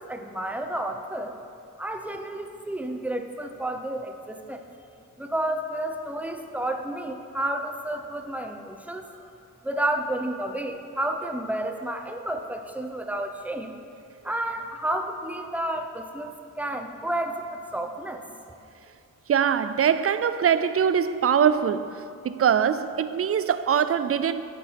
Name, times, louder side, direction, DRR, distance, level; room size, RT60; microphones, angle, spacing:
voice 1, 0.0-1.3 1.8-4.7 5.2-9.1 9.6-13.8 14.2-18.2, right 1 dB, 5° right, 5 dB, 0.7 m, -31 dB
voice 2, 19.3-24.4, right 8 dB, 45° right, 13 dB, 0.4 m, -23 dB
14.5 x 5.3 x 4.7 m, 2.5 s
cardioid pair, 90°, 32 cm